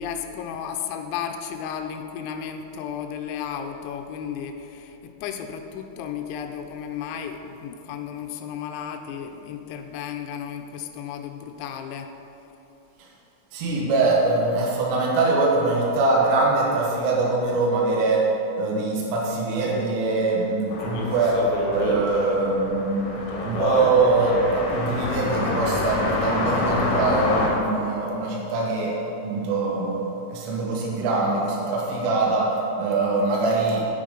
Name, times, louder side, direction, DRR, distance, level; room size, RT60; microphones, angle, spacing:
voice 1, 0.0-12.1, left 8 dB, 85° left, 5 dB, 2.8 m, -34 dB
voice 2, 13.5-18.3 18.6-21.4 21.7-23.1 23.4-29.0 29.2-33.9, right 3 dB, 75° right, -3 dB, 3.3 m, -23 dB
sound 1, 20.7-27.5, left 2 dB, 65° left, 3.1 m, -27 dB
9.3 x 8.5 x 5.2 m, 3.0 s
omnidirectional pair, 5.6 m